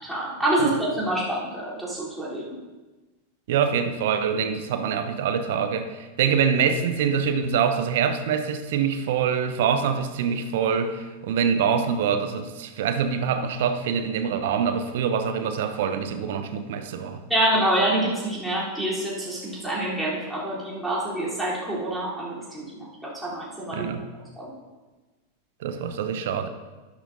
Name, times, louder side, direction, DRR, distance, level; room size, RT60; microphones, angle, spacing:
voice 1, 0.0-2.5 17.3-23.9 24.4-24.5, right 1 dB, 5° right, -8 dB, 3.5 m, -26 dB
voice 2, 3.5-17.2 23.7-24.0 25.6-26.5, right 7 dB, 55° right, 9 dB, 0.8 m, -25 dB
12.0 x 11.5 x 2.7 m, 1.2 s
figure-of-eight pair, 90°, 0 cm